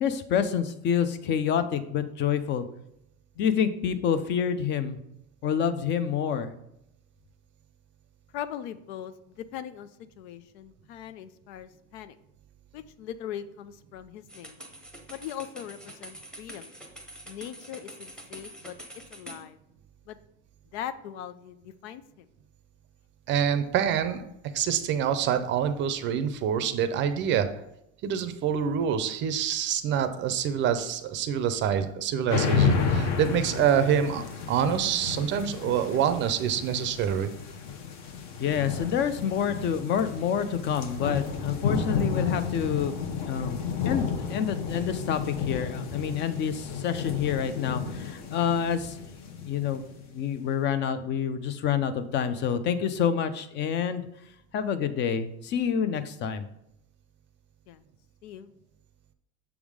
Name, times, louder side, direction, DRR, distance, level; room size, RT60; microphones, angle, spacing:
voice 1, 0.0-2.6 3.4-5.0 5.4-6.5 38.4-42.9 43.2-43.6 43.8-49.0 49.4-49.8 50.1-54.1 54.5-56.5, left 8 dB, 35° left, 12 dB, 0.5 m, -27 dB
voice 2, 8.3-9.9 10.2-12.2 12.7-14.6 15.1-16.7 17.3-18.8 19.1-19.6 20.1-20.2 20.7-22.3 57.7-57.8 58.2-58.5, left 10 dB, 85° left, 13 dB, 0.6 m, -40 dB
sound 1, 14.3-19.4, right 1 dB, ahead, 0.8 m, -45 dB
voice 3, 23.3-24.2 24.5-27.5 28.0-37.3, right 8 dB, 35° right, 10 dB, 0.5 m, -26 dB
sound 2, 32.3-50.1, left 6 dB, 55° left, 1.0 m, -31 dB
7.0 x 3.6 x 4.9 m, 0.80 s
cardioid pair, 150°, 32 cm